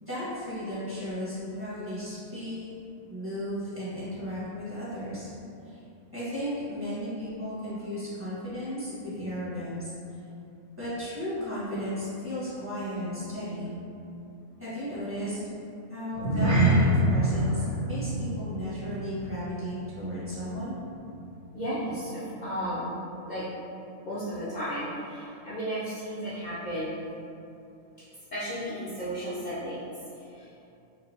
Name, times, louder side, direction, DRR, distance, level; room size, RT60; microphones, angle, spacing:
voice 1, 0.0-2.6 3.1-5.3 5.6-5.8 6.1-9.9 10.8-13.7 14.6-15.4 15.9-20.8, equal, 10° right, -12 dB, 1.2 m, -35 dB
sound 1, 16.1-20.7 21.0-21.3 21.8-21.9, right 1 dB, 65° right, 1.4 m, -26 dB
voice 2, 21.5-23.0 23.3-23.5 24.0-27.0 28.3-30.7, equal, 60° left, -10 dB, 0.4 m, -34 dB
4.5 x 2.6 x 2.8 m, 2.7 s
omnidirectional pair, 1.5 m